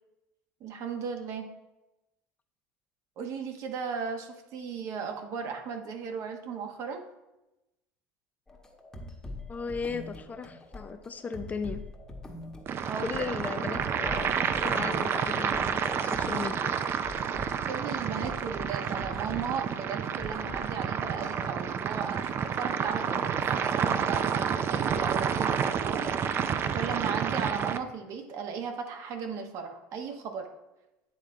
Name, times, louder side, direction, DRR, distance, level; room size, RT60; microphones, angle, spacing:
voice 1, 0.6-1.5 3.2-7.0 12.9-13.3 17.7-26.0 26.7-30.5, right 6 dB, 55° right, 5 dB, 1.1 m, -36 dB
sound 1, 8.5-16.5 17.0-17.5 18.2-19.6 20.0-20.8 21.2-22.0 23.6-24.4 26.0-26.8, left 1 dB, 10° left, 1.1 m, -44 dB
voice 2, 9.5-11.9 13.0-16.7, left 5 dB, 25° left, 9 dB, 0.5 m, -36 dB
sound 2, 12.7-27.8, right 7 dB, 40° right, 0.5 m, -29 dB
9.1 x 3.6 x 4.3 m, 0.96 s
supercardioid pair, 105°, 6 cm